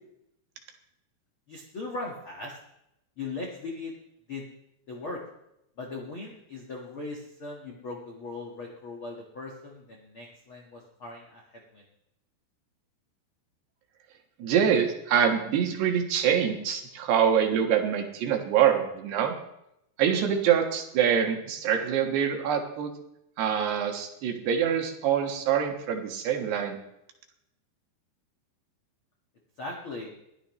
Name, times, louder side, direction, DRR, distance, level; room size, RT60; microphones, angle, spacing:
voice 1, 1.5-2.6 3.2-3.9 4.3-4.4 4.9-5.2 5.8-11.8 29.6-30.1, left 3 dB, 75° left, -2 dB, 1.2 m, -39 dB
voice 2, 14.4-19.3 20.0-22.9 23.4-26.8, right 8 dB, 70° right, 3 dB, 3.3 m, -25 dB
21.0 x 13.5 x 3.2 m, 0.82 s
omnidirectional pair, 5.4 m